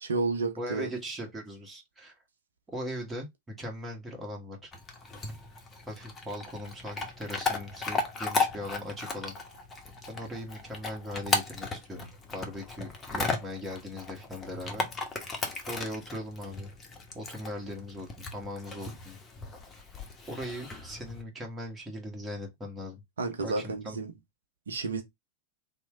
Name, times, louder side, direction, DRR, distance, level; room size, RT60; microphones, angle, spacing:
voice 1, 0.0-0.9 23.2-24.1 24.7-25.0, right 3 dB, 75° right, 0.6 m, -31 dB
voice 2, 0.6-2.1 2.7-3.3 3.6-4.7 5.9-9.4 10.1-14.8 15.7-16.7 17.1-19.2 20.3-23.0 23.4-24.0, equal, 15° right, 1.3 m, -39 dB
Chewing mastication / Dog, 4.7-21.2, left 3 dB, 20° left, 0.9 m, -36 dB
3.1 x 2.1 x 3.5 m
figure-of-eight pair, 95°, 0 cm